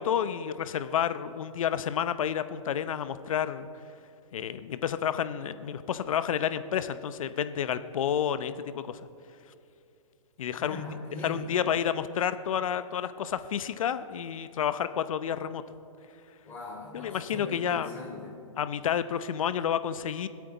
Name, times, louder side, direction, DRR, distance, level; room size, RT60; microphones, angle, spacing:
voice 1, 0.0-3.7 4.3-9.0 10.4-10.8 11.2-15.6 16.9-17.9 18.6-20.3, left 9 dB, 70° left, 12 dB, 0.7 m, -30 dB
voice 2, 10.6-11.6 16.4-18.4, left 2 dB, 10° left, -5 dB, 3.7 m, -40 dB
24.5 x 8.4 x 4.1 m, 2.5 s
hypercardioid pair, 150°, 18 cm